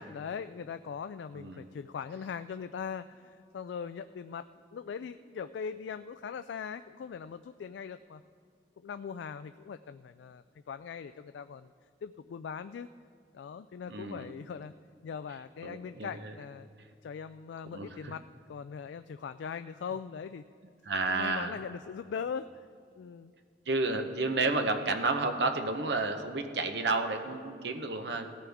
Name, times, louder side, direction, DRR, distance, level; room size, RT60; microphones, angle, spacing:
voice 1, 0.0-4.5 4.7-8.2 8.8-11.7 12.0-12.9 13.3-14.7 15.0-16.7 17.0-20.4 21.1-22.5 23.0-23.3, left 6 dB, 80° left, 11 dB, 0.3 m, -40 dB
voice 2, 1.3-1.7 13.9-14.3 15.6-16.3 17.7-18.1 20.9-21.6 23.7-28.4, right 3 dB, 70° right, 6 dB, 0.8 m, -31 dB
17.5 x 13.5 x 3.5 m, 2.2 s
head